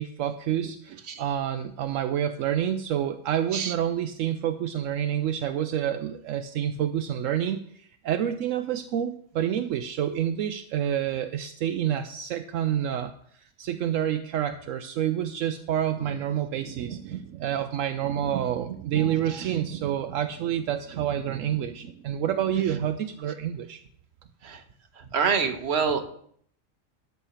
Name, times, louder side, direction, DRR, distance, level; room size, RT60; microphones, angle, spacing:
voice 1, 0.0-13.1 13.6-23.8, right 10 dB, 75° right, 8 dB, 0.9 m, -28 dB
voice 2, 25.0-26.0, right 6 dB, 55° right, 7 dB, 1.2 m, -26 dB
12.5 x 6.8 x 4.4 m, 0.64 s
omnidirectional pair, 1.4 m